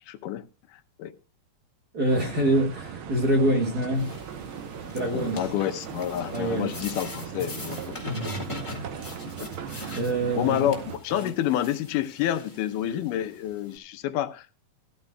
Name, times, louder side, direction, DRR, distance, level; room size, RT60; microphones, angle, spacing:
voice 1, 0.1-0.4 0.7-1.1 5.0-8.2 9.4-10.0 10.4-14.5, left 11 dB, 85° left, 2.3 m, -29 dB
voice 2, 1.9-4.1 4.8-5.4 6.3-6.7 8.0-8.5 9.9-10.7, right 1 dB, 40° right, 1.7 m, -25 dB
sound 1, 2.1-11.0, right 7 dB, 80° right, 1.1 m, -38 dB
sound 2, 3.9-13.8, left 2 dB, 15° left, 1.2 m, -43 dB
16.5 x 13.0 x 2.3 m
omnidirectional pair, 3.7 m